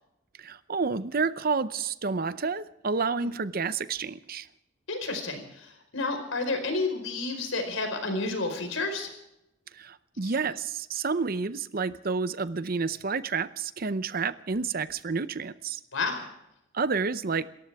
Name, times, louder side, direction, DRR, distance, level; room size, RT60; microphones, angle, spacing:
voice 1, 0.4-4.5 9.7-15.8 16.7-17.5, right 4 dB, 45° right, 14 dB, 0.7 m, -30 dB
voice 2, 4.9-9.1 10.2-10.3 15.9-16.3, left 3 dB, 75° left, 6 dB, 4.8 m, -31 dB
28.0 x 14.5 x 3.6 m, 0.83 s
head